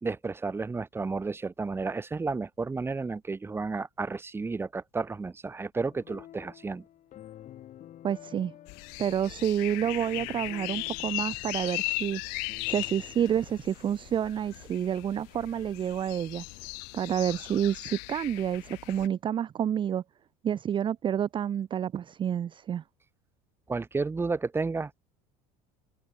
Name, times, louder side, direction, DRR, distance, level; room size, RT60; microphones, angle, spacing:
voice 1, 0.0-6.8 23.7-25.0, right 4 dB, 15° right, 0.9 m, -32 dB
sound 1, 5.9-13.3, left 12 dB, 50° left, 5.2 m, -50 dB
voice 2, 8.0-8.5 9.0-12.2 12.7-16.4 16.9-20.0 20.4-22.8, right 9 dB, 30° right, 0.5 m, -29 dB
sound 2, 8.7-19.1, left 34 dB, 75° left, 0.9 m, -38 dB
supercardioid pair, 110°, 16 cm